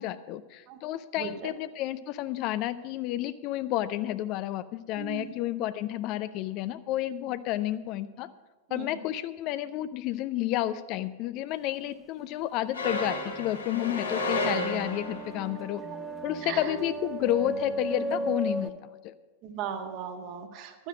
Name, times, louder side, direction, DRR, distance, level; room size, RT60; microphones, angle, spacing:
voice 1, 0.0-8.3 8.7-15.8 16.2-18.7 19.0-19.1, left 13 dB, 40° left, 14 dB, 0.5 m, -31 dB
voice 2, 1.2-1.5 5.0-5.3 8.7-9.0 16.4-16.8 19.4-20.9, right 7 dB, 40° right, 5 dB, 1.5 m, -37 dB
sound 1, 12.7-15.4, left 2 dB, 75° left, 2.7 m, -31 dB
sound 2, 12.8-18.7, right 1 dB, 10° right, 1.1 m, -36 dB
12.5 x 9.8 x 6.1 m, 1.2 s
figure-of-eight pair, 90°, 0 cm